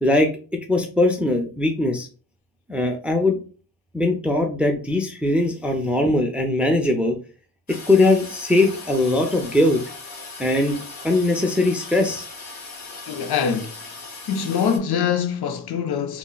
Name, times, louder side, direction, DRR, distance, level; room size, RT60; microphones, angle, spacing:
voice 1, 0.0-2.1 2.7-3.4 3.9-7.2 7.7-9.8 10.4-10.8 11.0-12.3, left 2 dB, 5° right, 0.4 m, -20 dB
Toilet flush, 7.7-14.8, left 3 dB, 45° left, 0.8 m, -38 dB
voice 2, 13.1-13.8 14.3-16.2, left 7 dB, 85° left, 0.5 m, -24 dB
3.6 x 2.0 x 2.3 m
cardioid pair, 80°, 38 cm